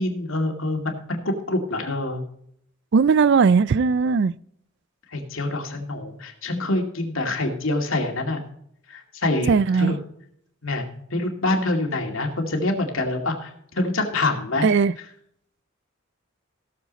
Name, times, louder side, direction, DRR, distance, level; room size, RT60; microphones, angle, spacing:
voice 1, 0.0-2.2 5.1-8.4 8.9-10.0 10.6-10.8 11.1-14.7, left 2 dB, 70° left, 2 dB, 2.3 m, -26 dB
voice 2, 2.9-4.3 9.5-9.9 14.6-14.9, right 5 dB, 55° right, 20 dB, 0.4 m, -18 dB
17.0 x 7.2 x 4.0 m, 0.69 s
head